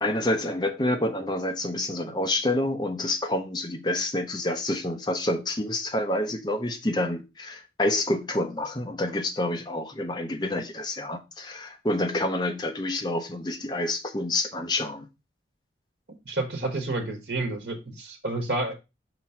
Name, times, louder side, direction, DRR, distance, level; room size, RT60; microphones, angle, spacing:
voice 1, 0.0-15.1, left 1 dB, 25° left, 0.9 m, -28 dB
voice 2, 16.2-18.7, right 2 dB, 65° right, 1.4 m, -30 dB
6.0 x 3.1 x 5.7 m
head